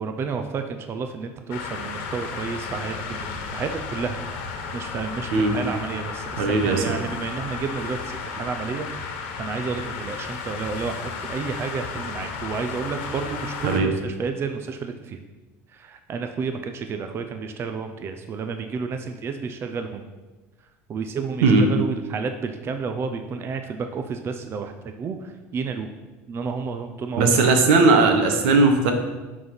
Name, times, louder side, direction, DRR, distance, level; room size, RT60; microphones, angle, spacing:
voice 1, 0.0-11.0 11.3-15.2 15.7-20.0 20.9-25.9 26.3-27.6, right 5 dB, 40° right, 6 dB, 0.7 m, -31 dB
sound 1, 1.5-13.8, left 5 dB, 90° left, 1.3 m, -33 dB
voice 2, 6.4-6.8 13.6-13.9 21.4-21.6 27.2-28.9, right 3 dB, 85° right, 5 dB, 1.4 m, -18 dB
11.0 x 4.1 x 6.0 m, 1.2 s
supercardioid pair, 105°, 6 cm